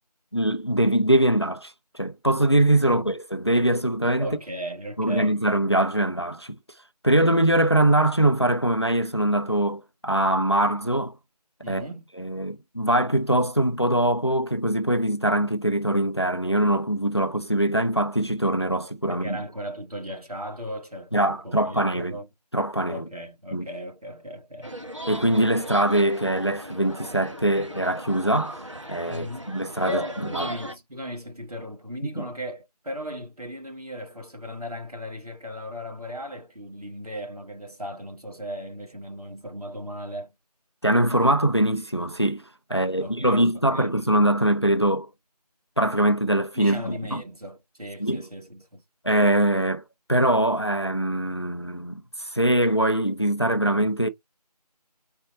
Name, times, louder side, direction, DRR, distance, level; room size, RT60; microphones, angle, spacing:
voice 1, 0.3-4.3 5.0-6.6 7.0-11.1 11.7-11.9 12.2-19.4 21.1-22.2 22.5-23.0 23.5-23.7 25.1-30.0 30.3-30.5 32.2-32.3 40.8-42.4 42.7-45.1 45.8-47.2 48.0-48.2 49.0-49.8 50.1-54.1, right 1 dB, 40° left, 0.5 m, -23 dB
voice 2, 4.2-5.4 11.6-12.1 19.1-22.3 22.9-24.7 29.0-29.5 29.9-40.3 42.7-43.4 43.7-43.9 46.5-48.8, equal, 65° right, 1.5 m, -37 dB
sound 1, 24.6-30.7, left 1 dB, 45° right, 1.1 m, -37 dB
5.2 x 4.3 x 4.3 m
figure-of-eight pair, 175°, 21 cm